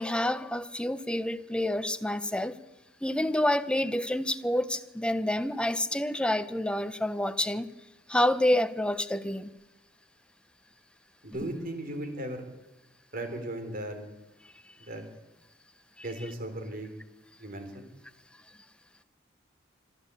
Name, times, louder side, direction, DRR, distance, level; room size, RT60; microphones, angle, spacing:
voice 1, 0.0-2.6 3.0-7.7 8.1-9.5 16.0-16.1, left 1 dB, 5° left, 0.9 m, -28 dB
voice 2, 11.2-12.4 13.1-14.1 14.9-15.0 16.0-16.9 17.4-17.9, right 1 dB, 45° right, 3.8 m, -36 dB
25.5 x 13.5 x 8.4 m
head